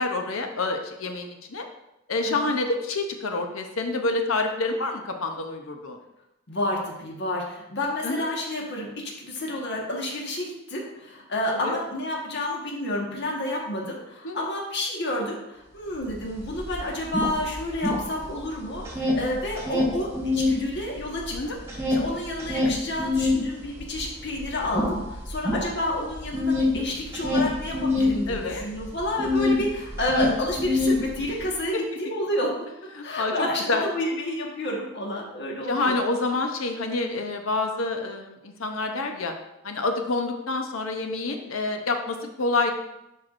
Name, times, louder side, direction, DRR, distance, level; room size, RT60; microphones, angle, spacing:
voice 1, 0.0-1.7 2.1-6.0 8.0-8.3 11.6-11.8 14.2-14.4 21.3-21.6 28.3-28.6 31.7-31.8 32.9-33.8 35.7-39.3 39.6-42.7, left 3 dB, 80° left, 4 dB, 0.8 m, -27 dB
voice 2, 6.5-32.5 33.0-36.0, left 1 dB, 55° left, -2 dB, 1.5 m, -30 dB
sound 1, 16.1-16.2 16.4-18.4 18.7-20.6 21.0-29.6 29.9-31.4, left 2 dB, 15° right, 1.3 m, -25 dB
10.5 x 4.6 x 2.6 m, 0.89 s
head